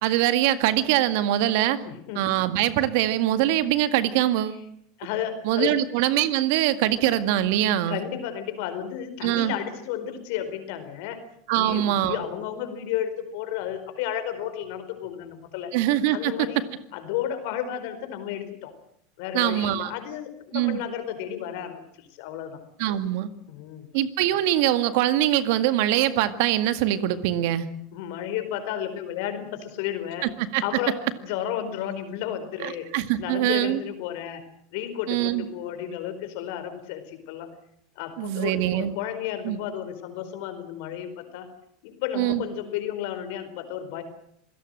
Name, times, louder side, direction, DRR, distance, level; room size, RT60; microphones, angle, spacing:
voice 1, 0.0-1.8 2.2-4.6 5.4-8.0 9.2-9.5 11.5-12.2 15.7-16.3 19.3-19.9 20.5-20.8 22.8-23.3 23.9-27.7 30.5-30.6 32.6-33.8 35.1-35.4 38.2-39.0 39.4-39.6 42.1-42.4, right 13 dB, 65° right, 11 dB, 1.9 m, -23 dB
voice 2, 1.9-2.2 5.0-5.8 7.9-11.2 11.6-15.7 16.1-16.6 16.9-18.7 19.2-22.6 23.5-23.9 27.9-30.3 30.6-30.9 31.2-32.9 33.2-34.4 34.7-37.5 38.0-41.5 41.8-44.0, left 10 dB, 65° left, 10 dB, 4.6 m, -32 dB
26.5 x 17.5 x 7.8 m, 0.70 s
hypercardioid pair, 85°, 0 cm